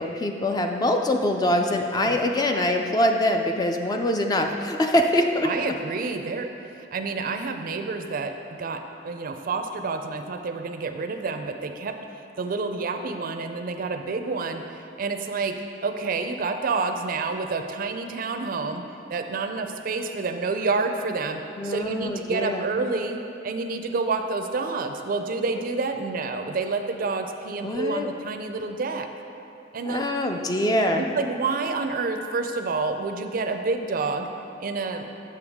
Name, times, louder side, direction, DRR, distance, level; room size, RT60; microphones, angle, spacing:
voice 1, 0.0-5.7 21.6-22.6 27.6-28.1 29.9-31.0, left 1 dB, 20° left, 4 dB, 0.3 m, -24 dB
voice 2, 5.4-6.5 6.9-8.3 8.6-11.9 12.4-14.6 15.0-15.5 15.8-18.8 19.1-29.1 29.7-30.0 31.0-34.3 34.6-35.1, right 4 dB, 50° right, 6 dB, 0.4 m, -28 dB
6.9 x 6.5 x 3.5 m, 2.7 s
head